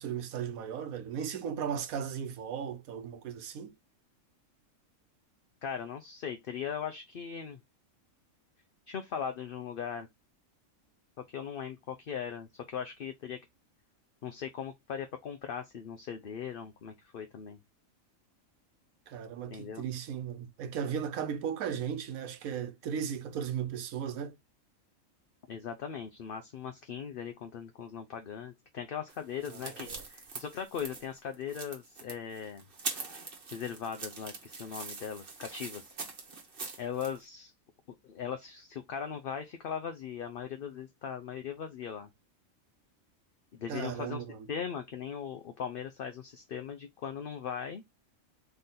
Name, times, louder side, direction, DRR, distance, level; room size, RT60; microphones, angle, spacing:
voice 1, 0.0-3.7 19.1-24.4 29.5-30.0 43.7-44.5, right 8 dB, 90° right, 1.2 m, -36 dB
voice 2, 5.6-7.6 8.9-10.1 11.3-13.4 14.2-17.6 19.5-19.8 25.5-32.6 33.5-35.9 36.8-37.5 38.0-42.1 43.5-44.2 44.5-47.8, left 7 dB, 55° left, 0.7 m, -39 dB
sound 1, 29.1-37.2, right 4 dB, 45° right, 1.3 m, -43 dB
4.1 x 3.3 x 3.8 m
omnidirectional pair, 1.4 m